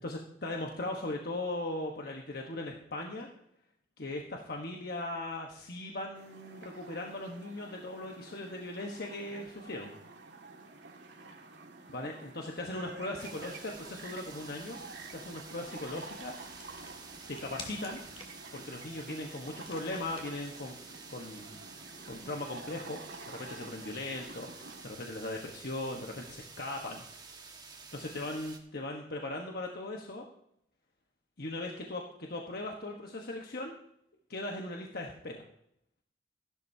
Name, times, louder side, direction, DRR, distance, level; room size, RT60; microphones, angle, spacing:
voice 1, 0.0-3.3 4.0-9.9 11.9-14.8 15.1-16.3 17.3-18.0 18.5-20.8 21.1-21.6 22.1-23.0 23.3-27.0 27.4-27.5 27.9-30.2 31.4-33.7 34.3-35.4, left 2 dB, 60° left, 1 dB, 1.2 m, -39 dB
sound 1, 6.1-24.8, right 3 dB, 80° right, 2.0 m, -49 dB
sound 2, 13.2-28.6, right 4 dB, 25° right, 1.6 m, -50 dB
sound 3, 14.2-20.7, left 2 dB, 30° left, 2.0 m, -53 dB
15.5 x 11.5 x 2.8 m, 0.74 s
head